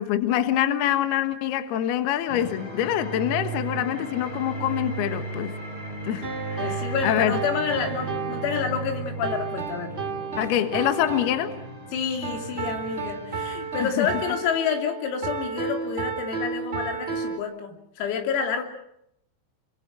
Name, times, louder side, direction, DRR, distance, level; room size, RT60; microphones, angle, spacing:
voice 1, 0.0-5.5 6.1-7.4 10.4-11.5 13.8-14.1, left 11 dB, 65° left, 8 dB, 2.9 m, -25 dB
sound 1, 2.3-13.7, right 3 dB, 25° left, 6.9 m, -36 dB
sound 2, 6.2-17.4, right 5 dB, 15° right, 2.5 m, -33 dB
voice 2, 6.6-9.9 11.9-18.7, left 7 dB, 85° left, 4 dB, 5.8 m, -29 dB
29.0 x 24.0 x 6.3 m, 0.76 s
omnidirectional pair, 6.0 m